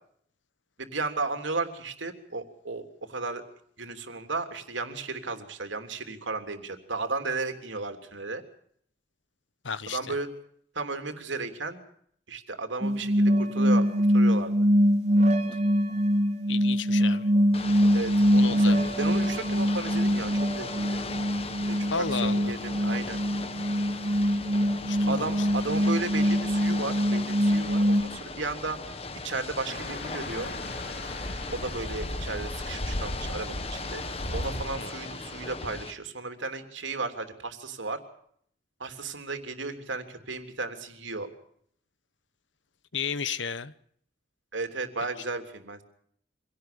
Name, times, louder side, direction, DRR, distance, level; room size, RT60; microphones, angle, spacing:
voice 1, 0.8-3.4 3.8-8.4 9.9-10.3 10.8-11.8 12.3-14.5 17.9-21.0 21.7-23.2 25.1-30.5 31.6-34.0 34.3-38.0 38.8-41.3 44.5-45.8, right 3 dB, 80° right, 3.3 m, -34 dB
voice 2, 9.6-10.0 16.5-17.3 18.3-19.0 21.9-22.5 24.9-25.5 34.8-34.9 42.9-43.7, left 5 dB, 80° left, 1.1 m, -33 dB
sound 1, 12.8-28.0, equal, 35° right, 2.7 m, -24 dB
Ocean / Boat Water vehicle, 17.5-35.9, left 3 dB, 30° left, 1.6 m, -38 dB
sound 2, 29.7-34.7, left 1 dB, 55° left, 3.5 m, -36 dB
25.5 x 17.5 x 7.0 m
head